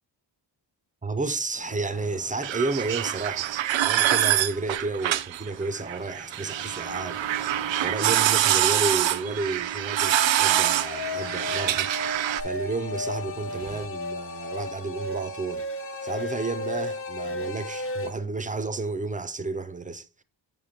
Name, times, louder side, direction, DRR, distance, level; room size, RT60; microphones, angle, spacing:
voice 1, 1.0-7.2 7.8-11.9 12.4-15.6 16.0-20.2, right 3 dB, 20° right, 0.5 m, -31 dB
sound 1, 1.5-13.9, left 2 dB, 60° left, 3.5 m, -50 dB
sound 2, 2.4-12.4, right 12 dB, 85° right, 0.6 m, -25 dB
sound 3, 10.0-18.1, left 2 dB, 30° left, 0.6 m, -34 dB
6.9 x 6.8 x 2.8 m
wide cardioid pair, 130°, 44 cm